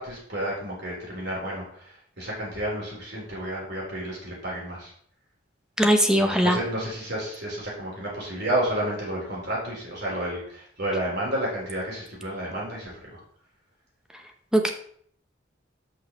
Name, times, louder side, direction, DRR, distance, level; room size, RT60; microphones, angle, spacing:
voice 1, 0.0-4.9 6.2-13.2, right 1 dB, 55° right, -5 dB, 3.7 m, -31 dB
voice 2, 5.8-6.6 14.5-14.7, equal, 5° right, 4 dB, 0.9 m, -20 dB
6.2 x 5.6 x 6.5 m, 0.62 s
head